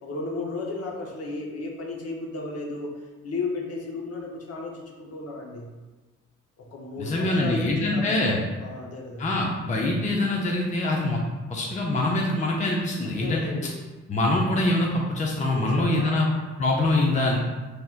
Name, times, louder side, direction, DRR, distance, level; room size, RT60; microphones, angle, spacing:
voice 1, 0.0-2.9 3.2-5.7 6.6-9.4 13.0-13.8 15.5-16.2, left 3 dB, 55° left, -1 dB, 1.0 m, -34 dB
voice 2, 7.0-8.4 9.2-11.2 11.5-13.5 14.1-16.3 16.6-17.4, left 2 dB, 25° left, -2 dB, 0.6 m, -24 dB
4.3 x 3.4 x 2.4 m, 1.2 s
cardioid pair, 90°, 30 cm